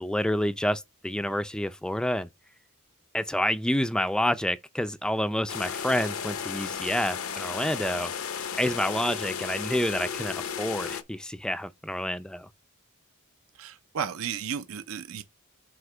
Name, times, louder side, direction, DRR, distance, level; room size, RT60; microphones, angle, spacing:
voice 1, 0.0-2.3 3.1-8.1 8.6-12.5, left 1 dB, 5° left, 0.4 m, -28 dB
sound 1, 5.5-11.0, left 7 dB, 70° left, 0.7 m, -34 dB
voice 2, 13.6-15.2, right 7 dB, 65° right, 0.5 m, -33 dB
7.8 x 2.8 x 4.9 m
head